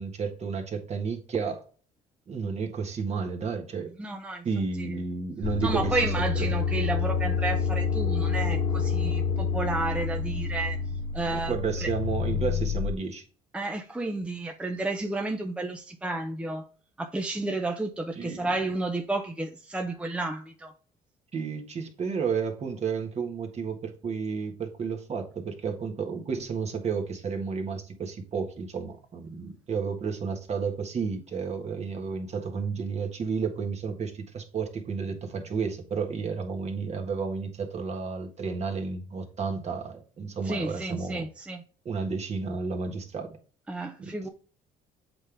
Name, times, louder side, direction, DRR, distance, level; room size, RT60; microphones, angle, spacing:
voice 1, 0.0-1.6 2.3-3.9 4.4-6.0 6.4-6.6 11.2-13.2 18.1-18.5 21.3-41.3 41.8-43.4 44.0-44.1, right 5 dB, 40° right, 1.5 m, -32 dB
voice 2, 4.0-4.4 4.8-4.9 5.6-10.8 11.1-11.5 11.8-11.9 13.5-16.6 17.0-20.7 40.4-41.6 43.7-44.3, right 2 dB, 5° right, 0.6 m, -31 dB
sound 1, 5.4-12.9, left 5 dB, 35° left, 0.4 m, -28 dB
7.9 x 3.7 x 3.4 m
cardioid pair, 110°, 17 cm